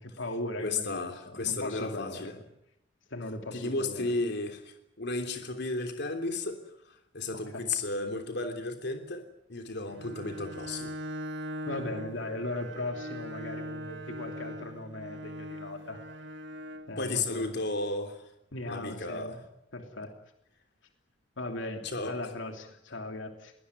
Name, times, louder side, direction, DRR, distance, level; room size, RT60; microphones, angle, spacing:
voice 1, 0.0-2.2 3.1-4.1 7.3-7.7 11.6-16.0 16.9-17.5 18.5-19.4 19.7-20.1 21.4-23.5, left 2 dB, 75° left, 4 dB, 3.0 m, -38 dB
voice 2, 0.6-2.3 3.5-6.6 7.1-9.2 9.5-10.9 17.0-18.2 18.7-19.4 21.8-22.2, left 3 dB, 60° left, 6 dB, 3.2 m, -33 dB
Bowed string instrument, 9.9-16.9, equal, 65° right, 1.8 m, -41 dB
22.5 x 19.5 x 9.9 m, 0.81 s
head